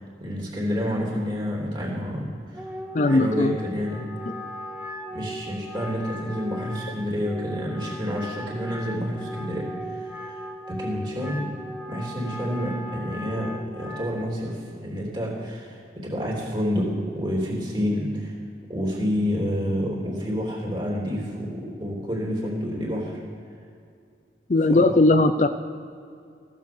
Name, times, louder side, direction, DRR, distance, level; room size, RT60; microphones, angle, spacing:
voice 1, 0.0-2.6 3.0-4.1 5.1-11.5 11.9-16.9 17.1-18.4 18.7-23.2 24.7-24.9, equal, 25° right, -3 dB, 3.4 m, -29 dB
Wind instrument woodwind instrument, 2.5-14.2, equal, 10° right, 1.1 m, -38 dB
voice 2, 2.9-3.5 24.5-25.5, left 2 dB, 40° left, 9 dB, 0.5 m, -18 dB
15.5 x 9.3 x 7.2 m, 2.4 s
head